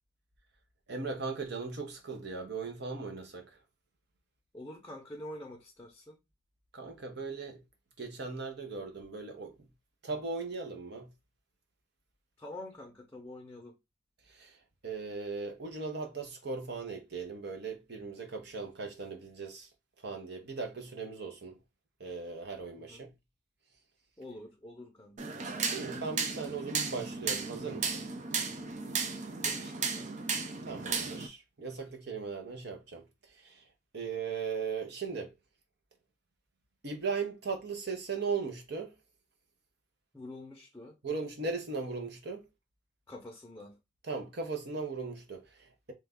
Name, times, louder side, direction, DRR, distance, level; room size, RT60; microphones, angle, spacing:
voice 1, 0.9-3.5 6.7-7.6 8.0-9.5 10.0-11.1 14.3-14.5 14.8-19.7 20.0-21.6 22.0-23.1 25.7-28.1 30.6-33.0 33.4-33.6 33.9-35.3 36.8-38.9 41.0-42.4 44.0-45.9, right 4 dB, 55° right, 0.8 m, -38 dB
voice 2, 4.5-6.2 12.4-13.7 22.8-23.1 24.2-25.4 28.6-28.9 29.4-30.1 40.1-41.0 43.1-43.8, left 1 dB, 15° left, 0.7 m, -47 dB
sound 1, 25.2-31.3, right 4 dB, 40° right, 0.5 m, -35 dB
3.2 x 2.3 x 3.5 m
head